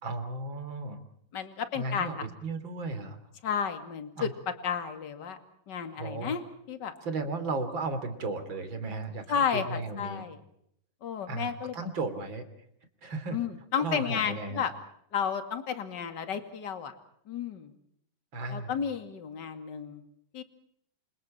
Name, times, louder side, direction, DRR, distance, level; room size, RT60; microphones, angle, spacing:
voice 1, 0.0-1.0 1.7-2.1 2.4-3.2 4.2-4.3 5.9-6.4 7.0-10.2 11.3-12.5 13.0-13.4 13.8-14.6 18.3-18.7, right 3 dB, 35° right, 9 dB, 3.6 m, -35 dB
voice 2, 1.3-2.2 3.4-4.3 4.6-5.4 5.7-6.9 9.3-10.4 11.0-11.7 13.3-14.7 15.1-16.9 17.3-17.7 18.5-20.0 20.3-20.4, left 7 dB, 35° left, 8 dB, 2.4 m, -32 dB
28.5 x 27.0 x 4.4 m, 0.70 s
omnidirectional pair, 4.0 m